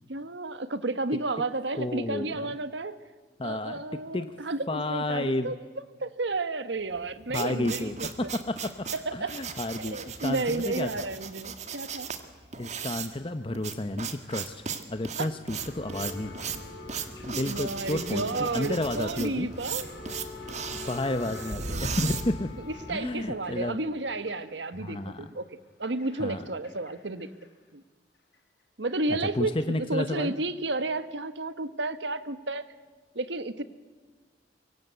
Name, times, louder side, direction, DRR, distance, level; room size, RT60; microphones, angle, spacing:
voice 1, 0.1-2.9 3.4-5.6 6.0-8.3 8.9-9.3 9.8-12.1 15.2-15.3 17.3-19.9 21.7-21.8 22.9-25.4 25.8-27.3 27.7-27.8 28.8-32.7 33.1-33.6, right 2 dB, 80° right, 12 dB, 1.3 m, -32 dB
voice 2, 1.8-2.5 3.4-3.8 4.1-4.4 4.7-5.5 7.3-11.1 12.5-14.6 14.9-16.6 17.3-19.5 20.7-22.5 22.9-23.8 24.8-25.3 26.2-26.4 29.1-30.3, left 1 dB, 30° left, 9 dB, 0.9 m, -31 dB
sound 1, 6.9-22.9, right 7 dB, 40° right, 1.9 m, -38 dB
sound 2, 15.5-24.9 25.8-26.9 27.2-27.4 28.3-28.4, left 1 dB, 75° left, 5.9 m, -41 dB
24.5 x 23.5 x 8.2 m, 1.4 s
head